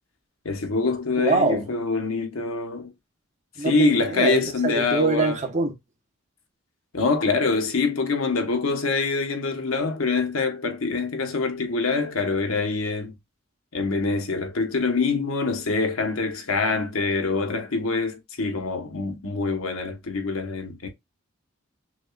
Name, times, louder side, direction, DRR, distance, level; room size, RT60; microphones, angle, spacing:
voice 1, 0.4-2.9 3.6-5.4 6.9-13.1 13.7-20.9, left 4 dB, 75° left, 1.1 m, -25 dB
voice 2, 1.2-1.7 3.6-5.7, right 3 dB, 35° right, 1.0 m, -24 dB
6.1 x 2.4 x 2.3 m
head